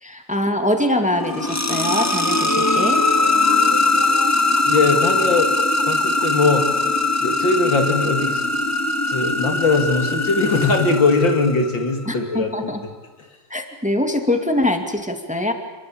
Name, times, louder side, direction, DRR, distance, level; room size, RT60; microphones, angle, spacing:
voice 1, 0.0-3.0 12.1-12.8 13.5-15.5, left 1 dB, 5° right, 5 dB, 2.2 m, -23 dB
sound 1, 1.1-11.9, left 2 dB, 20° left, 0.5 m, -20 dB
voice 2, 4.7-5.5 5.9-6.7 7.2-8.4 9.1-12.7, left 3 dB, 80° left, 5 dB, 3.3 m, -20 dB
27.5 x 21.5 x 8.8 m, 1.3 s
omnidirectional pair, 2.0 m